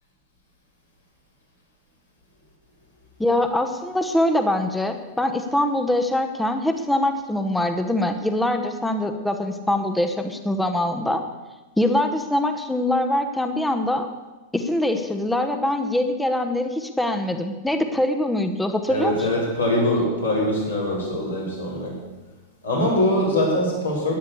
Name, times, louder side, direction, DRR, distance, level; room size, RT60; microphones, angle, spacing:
voice 1, 3.2-11.2 11.8-14.1 14.5-19.3, left 1 dB, 5° left, 7 dB, 1.0 m, -23 dB
voice 2, 18.9-21.9 22.6-24.2, left 1 dB, 80° left, -5 dB, 5.3 m, -23 dB
13.0 x 10.5 x 6.9 m, 1.2 s
figure-of-eight pair, 90°, 0 cm